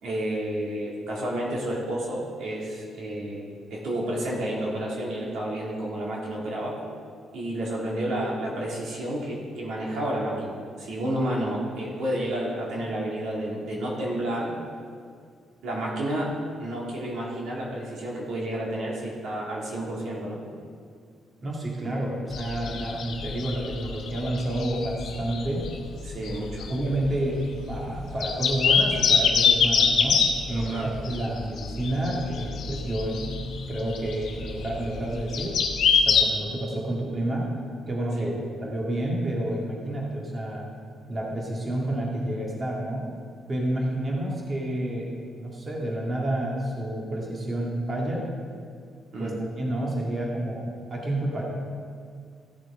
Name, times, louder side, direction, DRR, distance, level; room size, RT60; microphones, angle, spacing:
voice 1, 0.0-6.8 7.3-14.5 15.6-16.3 16.6-20.4 26.0-26.7 30.5-31.3 38.2-38.3 49.1-49.4, right 1 dB, 75° right, -4 dB, 2.4 m, -30 dB
voice 2, 21.4-25.7 26.2-26.3 26.7-30.2 30.5-30.7 31.1-33.4 33.7-35.6 36.1-37.5 37.9-38.3 38.6-40.7 41.1-43.0 43.5-45.1 45.4-48.3 49.2-51.4, right 1 dB, 35° right, -3 dB, 1.9 m, -29 dB
sound 1, 22.3-36.2, left 6 dB, 70° left, 1.0 m, -25 dB
15.0 x 7.4 x 3.7 m, 2.2 s
cardioid pair, 90°, 0 cm